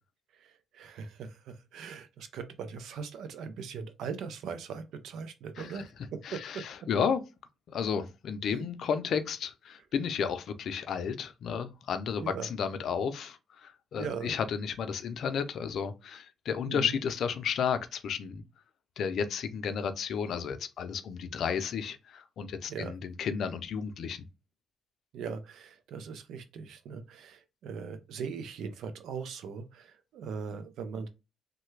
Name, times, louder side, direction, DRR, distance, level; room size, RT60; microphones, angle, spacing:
voice 1, 0.3-6.7 8.4-8.6 12.2-12.5 14.0-14.3 16.7-17.0 22.7-22.9 25.1-31.1, right 6 dB, 80° right, 0.5 m, -40 dB
voice 2, 6.2-7.2 7.7-18.4 19.0-24.3, left 7 dB, 65° left, 0.5 m, -32 dB
3.2 x 2.2 x 3.1 m
cardioid pair, 90°, 0 cm